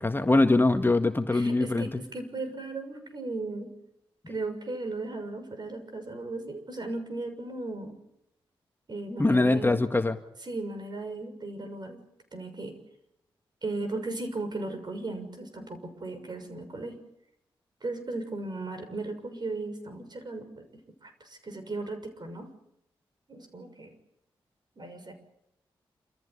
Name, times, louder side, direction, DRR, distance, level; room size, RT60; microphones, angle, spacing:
voice 1, 0.0-1.9 9.2-10.2, left 2 dB, 20° left, 7 dB, 1.7 m, -23 dB
voice 2, 1.3-3.7 4.3-8.0 8.9-9.8 10.4-12.0 12.3-12.8 13.6-16.9 17.8-20.7 21.0-22.5 23.3-23.9 24.8-25.2, right 2 dB, 50° right, 8 dB, 6.5 m, -36 dB
27.5 x 14.5 x 9.7 m, 0.82 s
cardioid pair, 50°, 10 cm